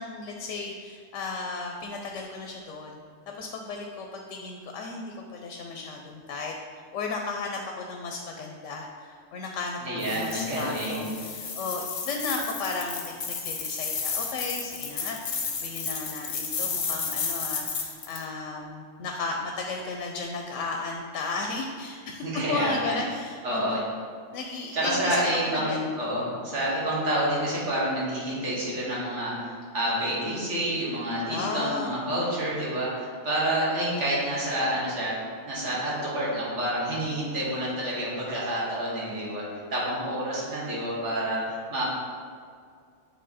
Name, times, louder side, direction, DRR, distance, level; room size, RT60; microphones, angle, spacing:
voice 1, 0.0-3.0 3.3-6.5 6.9-24.0 24.3-25.9 31.3-32.3, left 3 dB, 85° left, 2 dB, 0.9 m, -34 dB
voice 2, 9.8-11.1 22.2-23.0 23.4-23.8 24.7-35.1 35.4-39.4 39.7-41.8, right 1 dB, 70° right, -7 dB, 1.9 m, -28 dB
sound 1, 10.0-18.2, left 5 dB, 55° left, 0.8 m, -33 dB
7.8 x 3.1 x 4.1 m, 2.1 s
omnidirectional pair, 1.3 m